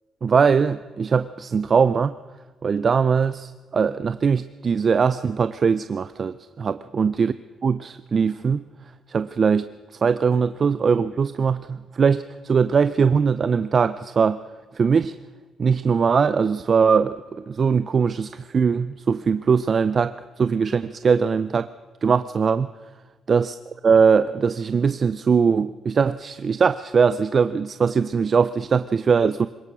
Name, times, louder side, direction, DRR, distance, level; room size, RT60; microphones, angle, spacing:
voice 1, 0.2-2.2 2.6-7.3 7.6-8.6 9.1-9.7 10.0-14.4 14.7-15.1 15.6-21.7 22.0-22.7 23.3-23.5 23.8-29.5, right 6 dB, 45° right, 14 dB, 0.5 m, -21 dB
22.0 x 19.5 x 6.2 m, 1.3 s
cardioid pair, 90°, 0 cm